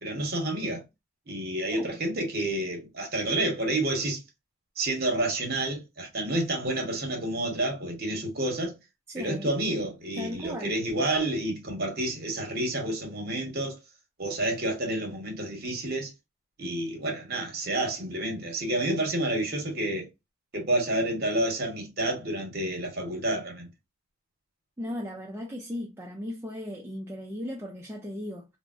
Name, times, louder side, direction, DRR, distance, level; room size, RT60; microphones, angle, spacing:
voice 1, 0.0-0.8 1.3-4.2 4.8-8.7 9.2-13.7 14.2-16.1 16.6-20.1 20.5-23.7, right 1 dB, 45° right, 1.0 m, -29 dB
voice 2, 9.1-9.5 10.2-10.8 24.8-28.4, equal, 10° right, 0.4 m, -36 dB
3.3 x 2.0 x 2.5 m
head